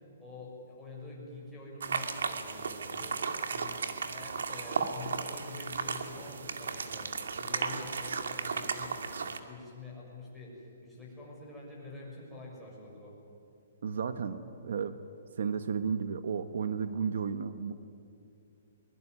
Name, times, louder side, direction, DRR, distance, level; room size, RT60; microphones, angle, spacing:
voice 1, 0.2-3.2 3.5-3.8 4.1-7.1 7.4-13.1, left 3 dB, ahead, -5 dB, 6.6 m, -46 dB
sound 1, 1.8-9.4, right 5 dB, 90° right, 2.3 m, -35 dB
voice 2, 13.8-15.0 15.4-17.7, right 6 dB, 65° right, 11 dB, 1.3 m, -33 dB
23.0 x 22.5 x 9.8 m, 2.6 s
hypercardioid pair, 170°, 0 cm